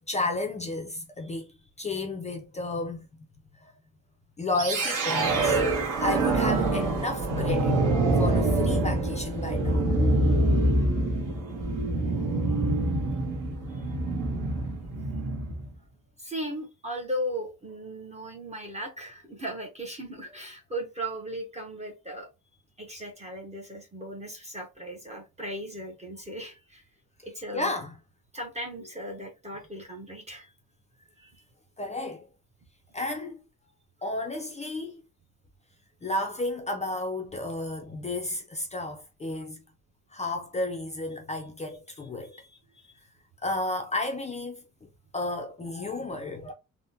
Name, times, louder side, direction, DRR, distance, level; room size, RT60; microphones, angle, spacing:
voice 1, 0.0-3.1 3.6-3.7 4.4-5.6 6.0-9.8 13.7-13.8 27.5-28.0 31.8-32.3 32.9-33.4 34.0-35.0 36.0-39.6 40.1-42.3 43.4-44.9 45.1-46.5, left 2 dB, 20° left, 0.4 m, -32 dB
sound 1, 4.6-15.7, right 2 dB, 60° right, 1.1 m, -25 dB
voice 2, 11.5-12.3 16.2-22.3 22.8-26.8 27.2-27.7 28.3-30.5 31.2-31.4 42.3-42.9, equal, 20° right, 0.6 m, -37 dB
3.5 x 2.1 x 2.6 m
cardioid pair, 175°, 35 cm